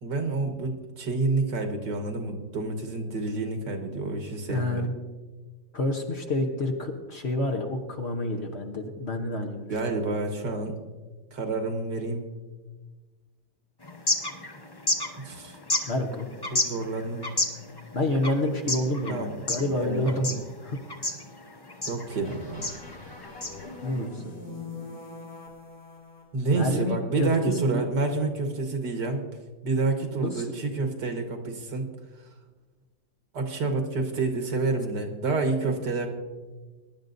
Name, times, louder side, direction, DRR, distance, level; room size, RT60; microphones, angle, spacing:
voice 1, 0.0-4.8 9.7-10.8 11.3-12.3 15.2-15.6 16.5-17.3 19.1-20.2 21.9-22.7 26.3-29.2 29.6-31.9 33.3-36.1, right 3 dB, 70° right, 4 dB, 2.0 m, -28 dB
voice 2, 4.5-4.9 5.7-9.7 15.9-16.3 17.9-20.8 23.8-24.3 26.5-27.9 30.1-30.6, left 1 dB, 45° left, 2 dB, 1.1 m, -28 dB
sound 1, 13.8-24.1, left 2 dB, 25° left, 0.5 m, -32 dB
sound 2, 22.1-26.2, left 3 dB, 70° left, 4.2 m, -43 dB
22.0 x 11.0 x 2.6 m, 1.3 s
omnidirectional pair, 1.9 m